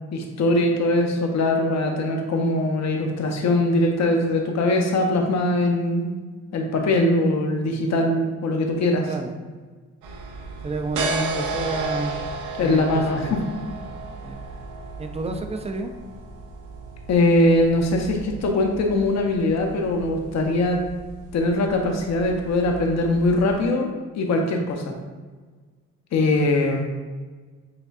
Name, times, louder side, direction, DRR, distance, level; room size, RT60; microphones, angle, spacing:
voice 1, 0.1-6.1 6.5-9.1 12.6-13.4 17.1-20.8 21.3-23.9 24.1-25.0 26.1-26.9, left 2 dB, 60° left, 2 dB, 0.8 m, -21 dB
voice 2, 9.1-9.4 10.6-12.2 12.6-13.4 14.2-14.4 15.0-15.9, right 3 dB, 20° right, 6 dB, 0.3 m, -30 dB
sound 1, 10.0-23.6, right 3 dB, 80° right, 0.7 m, -34 dB
5.9 x 2.5 x 2.4 m, 1.4 s
cardioid pair, 90°, 30 cm